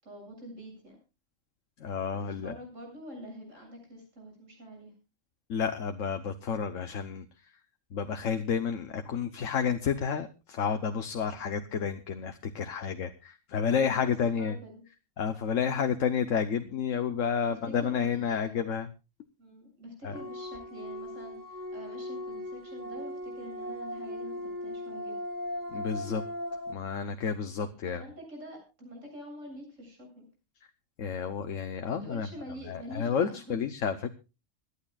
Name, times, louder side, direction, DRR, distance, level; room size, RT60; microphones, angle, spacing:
voice 1, 0.0-1.0 2.1-4.9 13.7-14.8 17.5-18.8 19.4-25.2 27.9-30.3 31.9-33.6, equal, 75° right, 1 dB, 8.2 m, -46 dB
voice 2, 1.8-2.6 5.5-7.5 7.9-14.6 15.2-18.9 20.0-20.2 25.7-26.2 26.7-28.0 31.0-32.3 32.7-34.1, left 7 dB, 80° left, 7 dB, 1.3 m, -30 dB
sound 1, 20.1-26.7, left 1 dB, 15° left, 2.9 m, -38 dB
26.0 x 11.5 x 2.4 m, 0.30 s
omnidirectional pair, 1.3 m